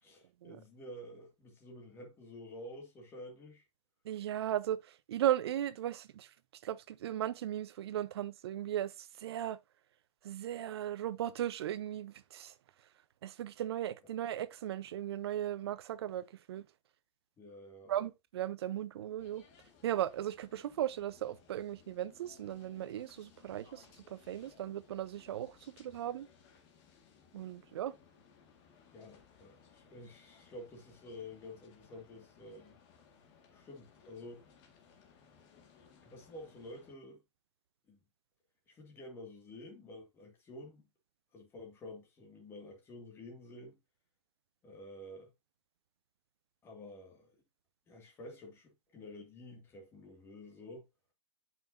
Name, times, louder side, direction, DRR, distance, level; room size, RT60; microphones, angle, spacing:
voice 1, 0.0-3.6 17.4-17.9 28.9-32.8 33.5-34.4 36.0-37.2 37.9-38.0 38.7-40.9 41.3-43.8 44.6-45.3 46.6-47.3 47.9-50.8, left 1 dB, 15° left, 2.3 m, -50 dB
voice 2, 4.0-6.3 6.6-9.6 10.2-12.5 13.2-16.7 17.9-19.4 19.8-26.3 27.3-27.9, right 11 dB, 55° right, 0.7 m, -37 dB
sound 1, 19.2-36.9, left 6 dB, 30° left, 1.8 m, -63 dB
9.0 x 5.8 x 2.7 m
hypercardioid pair, 150°, 16 cm